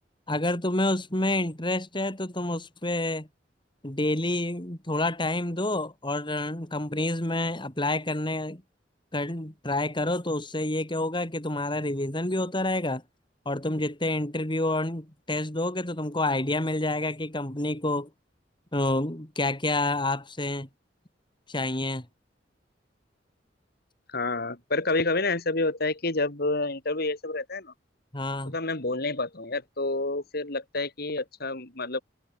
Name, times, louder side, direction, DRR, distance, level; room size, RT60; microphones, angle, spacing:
voice 1, 0.3-3.3 3.8-8.6 9.1-13.0 13.5-18.1 18.7-20.7 21.5-22.1 28.1-28.6, left 2 dB, 25° left, 3.6 m, -28 dB
voice 2, 24.1-27.7 28.5-32.0, left 2 dB, 60° left, 3.2 m, -29 dB
head